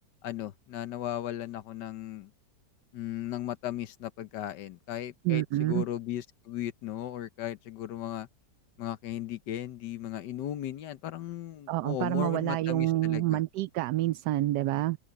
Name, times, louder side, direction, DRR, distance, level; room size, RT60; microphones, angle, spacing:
voice 1, 0.2-2.3 2.9-8.3 8.8-13.4, left 12 dB, 85° left, 1.5 m, -36 dB
voice 2, 5.2-5.8 11.7-15.0, right 16 dB, 75° right, 1.2 m, -28 dB
open air
omnidirectional pair, 1.8 m